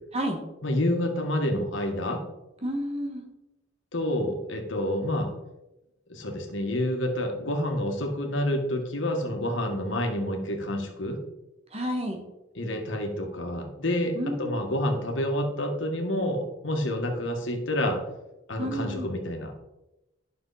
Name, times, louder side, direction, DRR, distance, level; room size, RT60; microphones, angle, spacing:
voice 1, 0.6-2.2 3.9-5.3 6.1-11.2 12.6-18.0 18.5-19.5, left 1 dB, 80° left, 3 dB, 1.8 m, -28 dB
voice 2, 2.6-3.2 11.7-12.2 14.2-14.4 18.6-19.1, equal, 35° right, 3 dB, 1.8 m, -30 dB
11.5 x 6.6 x 4.2 m, 0.95 s
head